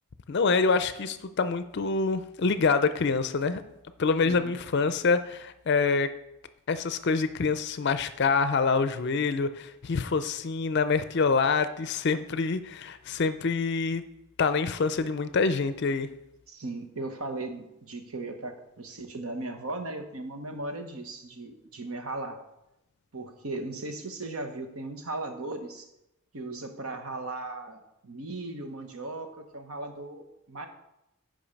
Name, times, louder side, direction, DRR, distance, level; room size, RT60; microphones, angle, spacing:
voice 1, 0.3-3.6 4.0-6.1 6.7-14.0 14.4-16.1, left 4 dB, 50° left, 12 dB, 0.4 m, -26 dB
voice 2, 4.2-4.6 16.5-22.4 23.1-25.9 26.3-30.7, right 2 dB, 80° right, 6 dB, 1.1 m, -37 dB
8.8 x 5.3 x 5.2 m, 0.85 s
head